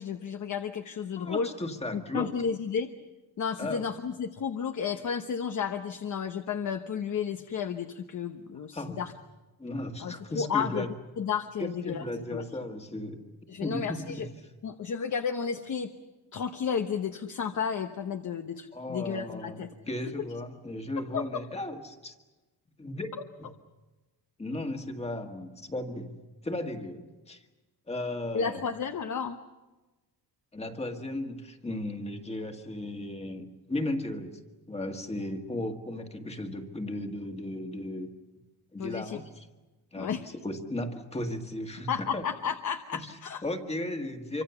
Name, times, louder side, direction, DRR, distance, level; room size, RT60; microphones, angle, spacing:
voice 1, 0.0-1.5 1.9-2.9 3.4-9.1 10.0-10.8 11.2-12.0 12.3-12.4 13.5-14.3 14.6-15.9 16.3-19.7 21.1-21.4 28.3-29.4 38.8-39.2 40.0-40.2 41.9-43.4, left 7 dB, 50° left, 6 dB, 1.1 m, -32 dB
voice 2, 1.1-2.3 3.6-3.8 8.7-9.0 9.6-10.9 11.6-13.2 13.6-14.3 18.7-19.6 19.9-22.1 22.8-23.1 23.4-23.5 24.4-26.1 26.4-27.4 27.9-28.6 30.5-34.4 34.7-38.1 38.7-39.5 39.9-42.2 42.9-44.4, left 1 dB, 15° left, 5 dB, 1.8 m, -35 dB
26.5 x 25.0 x 7.0 m, 1.2 s
wide cardioid pair, 170°, 40 cm